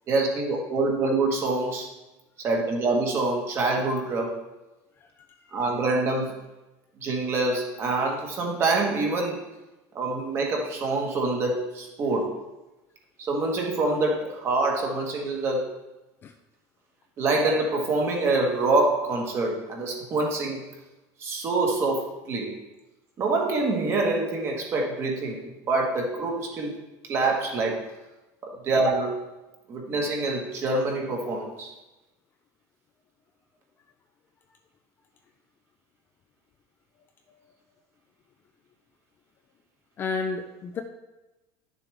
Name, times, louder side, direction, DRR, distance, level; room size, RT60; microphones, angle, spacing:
voice 1, 0.1-1.9 2.4-4.3 5.5-6.3 7.0-9.4 9.9-12.3 13.2-15.7 17.2-20.6 21.2-22.5 23.2-26.8 27.1-27.8 28.4-29.2 29.7-31.7, right 2 dB, 30° right, 1 dB, 1.5 m, -26 dB
voice 2, 5.0-5.5 16.2-16.3 40.0-40.8, left 4 dB, 25° left, 5 dB, 0.5 m, -32 dB
11.0 x 6.9 x 3.5 m, 1.0 s
cardioid pair, 175°, 9 cm